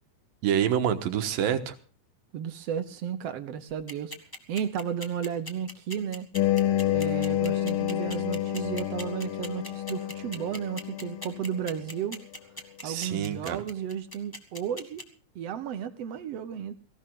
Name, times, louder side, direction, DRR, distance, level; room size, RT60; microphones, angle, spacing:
voice 1, 0.4-1.8 12.8-13.6, right 9 dB, 85° right, 3.1 m, -27 dB
voice 2, 2.3-4.1 4.5-6.3 6.9-12.2 12.8-15.1 15.3-16.7, right 8 dB, 65° right, 1.6 m, -33 dB
sound 1, 3.7-15.0, left 1 dB, 15° left, 0.7 m, -40 dB
sound 2, 6.4-11.9, left 12 dB, 85° left, 3.0 m, -29 dB
18.0 x 16.5 x 3.8 m
omnidirectional pair, 4.0 m